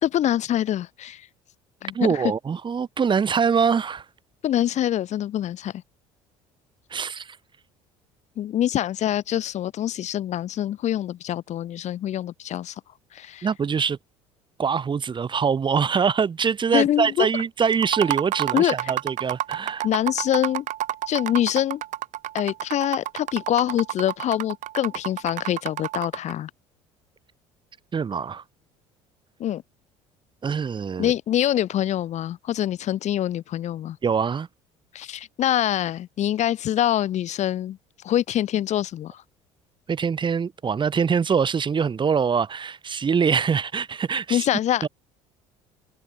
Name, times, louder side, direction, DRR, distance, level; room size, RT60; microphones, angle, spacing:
voice 1, 0.0-1.2 1.8-2.2 4.4-5.8 8.4-12.7 13.1-13.5 16.7-17.3 18.5-18.9 19.8-20.6 21.1-21.8 22.3-26.5 29.4-29.6 31.0-34.0 34.9-37.8 38.0-39.2 44.3-44.9, left 11 dB, 55° left, 5.0 m, -25 dB
voice 2, 1.9-4.0 6.9-7.4 13.4-14.0 14.6-19.9 27.9-28.4 30.4-31.1 34.0-34.5 39.9-44.5 44.8-44.9, right 6 dB, 35° right, 5.0 m, -24 dB
sound 1, 17.7-26.3, right 14 dB, 60° right, 3.8 m, -29 dB
supercardioid pair, 80°, 14 cm